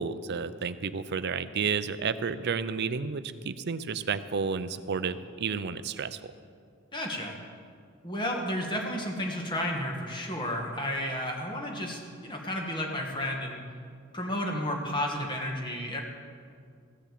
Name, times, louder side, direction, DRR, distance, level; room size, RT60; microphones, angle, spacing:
voice 1, 0.0-6.2, right 5 dB, 50° right, 13 dB, 0.5 m, -31 dB
voice 2, 6.9-7.3 8.0-13.6 14.1-16.0, left 1 dB, 20° left, 0 dB, 1.7 m, -32 dB
15.0 x 7.0 x 7.5 m, 2.2 s
head